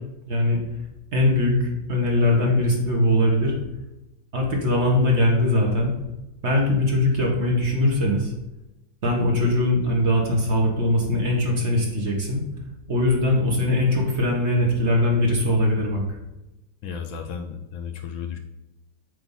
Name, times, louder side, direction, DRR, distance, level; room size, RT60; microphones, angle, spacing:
voice 1, 0.3-0.6 1.1-3.5 4.3-5.9 6.4-8.3 9.0-12.4 12.9-16.0, left 1 dB, 40° right, 0 dB, 1.3 m, -21 dB
voice 2, 16.8-18.4, left 7 dB, 75° left, 5 dB, 1.4 m, -33 dB
8.1 x 2.9 x 5.5 m, 0.96 s
omnidirectional pair, 2.3 m